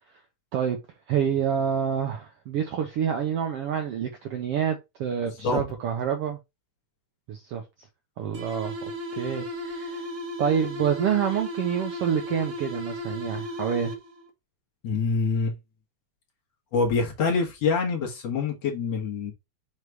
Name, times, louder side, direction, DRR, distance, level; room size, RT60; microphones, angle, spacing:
voice 1, 1.1-6.4 7.3-7.6 8.2-8.7 9.1-10.0 10.4-13.9, right 8 dB, 70° right, 1.4 m, -27 dB
sound 1, 8.3-14.3, left 1 dB, 45° right, 0.9 m, -35 dB
voice 2, 14.8-15.6 16.7-19.3, left 4 dB, 60° left, 2.4 m, -25 dB
6.6 x 3.2 x 4.6 m
omnidirectional pair, 3.6 m